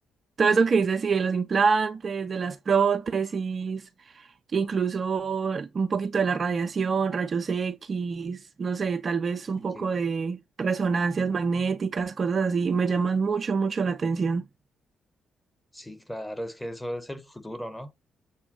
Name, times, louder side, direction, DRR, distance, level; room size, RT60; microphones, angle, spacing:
voice 1, 0.4-3.9 4.2-14.5, right 5 dB, 40° right, 0.3 m, -26 dB
voice 2, 15.7-17.9, equal, 10° left, 0.7 m, -36 dB
6.6 x 2.2 x 2.5 m
figure-of-eight pair, 40°, 0 cm